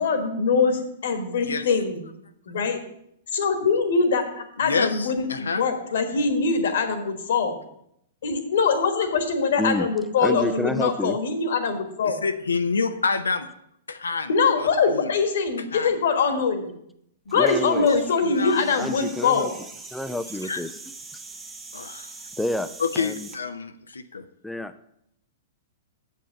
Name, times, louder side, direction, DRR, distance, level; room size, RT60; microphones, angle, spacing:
voice 1, 0.0-2.0 2.5-2.8 3.3-4.2 4.6-7.6 8.2-12.2 14.3-16.7 17.3-19.5, left 5 dB, 65° left, 8 dB, 1.4 m, -23 dB
voice 2, 4.6-5.6 12.0-13.5 13.9-15.1 15.7-15.9 17.8-18.7 20.4-20.6 21.7-22.1 22.8-24.2, left 4 dB, 85° left, 9 dB, 0.6 m, -28 dB
voice 3, 10.2-11.2 17.3-17.9 18.8-19.5 19.9-20.8 22.4-22.7 23.0-23.3 24.4-24.7, left 1 dB, 5° left, 11 dB, 0.4 m, -28 dB
sound 1, 17.3-23.4, right 3 dB, 15° right, 1.3 m, -43 dB
7.2 x 5.5 x 6.7 m, 0.74 s
hypercardioid pair, 115°, 0 cm